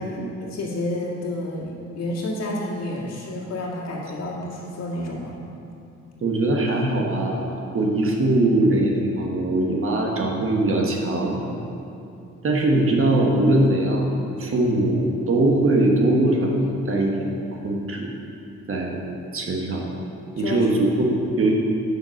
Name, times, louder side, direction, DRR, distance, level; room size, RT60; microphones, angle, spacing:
voice 1, 0.0-5.4 20.4-21.0, left 1 dB, 55° left, -4 dB, 1.9 m, -30 dB
voice 2, 6.2-11.4 12.4-17.3 17.6-18.1 18.7-19.0 19.3-19.8 20.4-21.5, right 2 dB, 45° right, 0 dB, 1.4 m, -21 dB
6.8 x 5.8 x 6.4 m, 2.7 s
cardioid pair, 90°, 30 cm